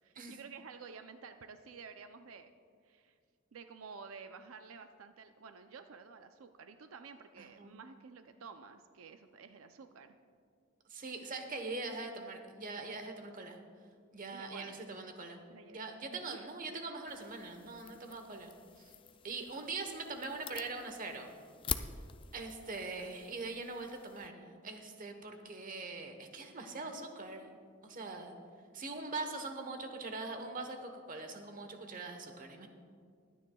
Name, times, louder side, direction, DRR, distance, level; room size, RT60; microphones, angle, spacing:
voice 1, 0.0-2.5 2.8-3.2 3.5-10.2 14.3-14.8 15.5-15.8 16.1-16.4 16.7-16.8, right 5 dB, 90° right, 8 dB, 0.5 m, -51 dB
voice 2, 7.4-7.7 10.9-13.6 14.1-15.4 15.7-18.9 19.2-21.3 22.3-27.5 27.8-28.3 28.7-32.7, right 3 dB, 40° right, 5 dB, 1.1 m, -42 dB
sound 1, 17.1-24.3, left 7 dB, 25° left, 0.4 m, -46 dB
22.5 x 9.4 x 2.3 m, 2.1 s
head